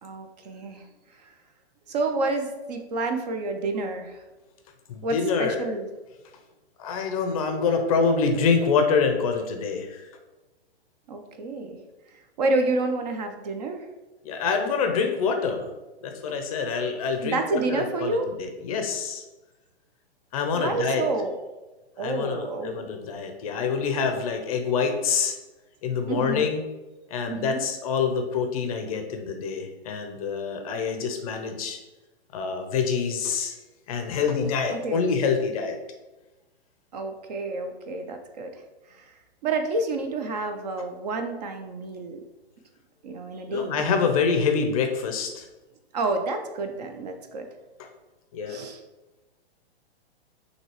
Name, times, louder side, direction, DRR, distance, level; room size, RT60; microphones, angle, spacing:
voice 1, 0.0-0.9 1.2-1.3 1.9-4.2 5.0-5.9 11.1-11.8 12.1-13.9 17.2-18.3 20.5-21.3 22.0-22.9 26.1-26.5 27.3-27.6 34.7-35.1 36.9-38.6 38.9-39.1 39.4-42.2 43.0-43.8 45.9-47.5 48.5-48.8, right 3 dB, 40° right, 6 dB, 0.4 m, -29 dB
voice 2, 4.9-5.6 6.8-10.1 14.2-15.7 16.0-19.2 20.3-21.0 22.0-25.4 25.8-26.6 27.1-31.8 32.3-33.5 33.9-35.8 43.5-45.4 48.3-48.6, left 5 dB, 35° left, 5 dB, 0.5 m, -26 dB
5.9 x 2.8 x 3.0 m, 1.1 s
hypercardioid pair, 150°, 33 cm